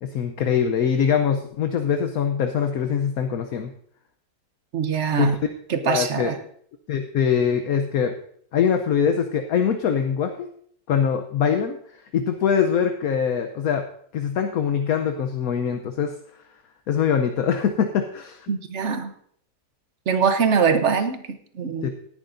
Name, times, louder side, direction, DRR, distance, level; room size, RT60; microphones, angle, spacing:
voice 1, 0.0-3.7 5.1-5.4 5.8-6.3 6.9-8.1 8.5-10.5 10.9-13.9 14.1-16.2 16.9-18.5 21.8-21.9, left 7 dB, 65° left, 6 dB, 1.1 m, -23 dB
voice 2, 4.7-5.3 5.7-6.4 18.5-19.1 20.1-21.9, right 6 dB, 50° right, 8 dB, 1.0 m, -23 dB
17.5 x 11.0 x 2.6 m, 0.63 s
omnidirectional pair, 1.8 m